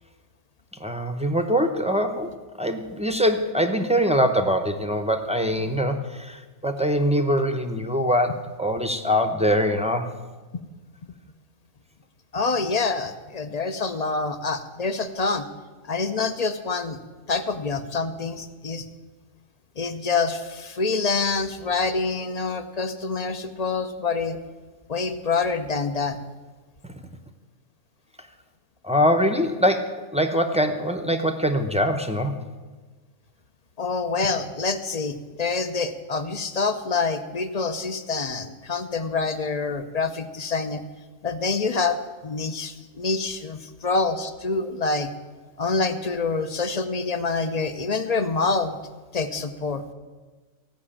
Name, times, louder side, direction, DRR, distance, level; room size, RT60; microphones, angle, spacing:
voice 1, 0.8-2.3 2.6-10.1 28.8-32.4, equal, 5° right, 5 dB, 0.6 m, -23 dB
voice 2, 12.3-15.5 15.8-17.0 17.3-18.8 19.8-24.4 24.9-26.2 33.8-40.8 41.2-45.1 45.6-48.8 49.1-49.8, left 4 dB, 40° left, 10 dB, 0.6 m, -26 dB
16.0 x 6.0 x 8.7 m, 1.3 s
omnidirectional pair, 1.4 m